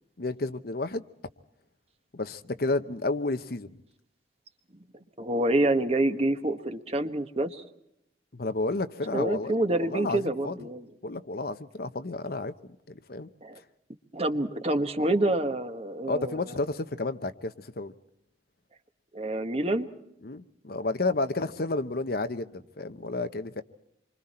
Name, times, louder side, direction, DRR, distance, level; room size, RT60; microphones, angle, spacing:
voice 1, 0.2-1.0 2.1-3.7 8.3-10.6 11.0-12.5 12.9-13.3 16.1-17.9 20.2-23.6, left 2 dB, 55° left, 0.9 m, -31 dB
voice 2, 4.9-7.6 9.1-10.9 13.4-13.6 14.1-16.5 19.1-19.9, right 1 dB, 35° right, 1.3 m, -27 dB
27.5 x 24.0 x 4.4 m
head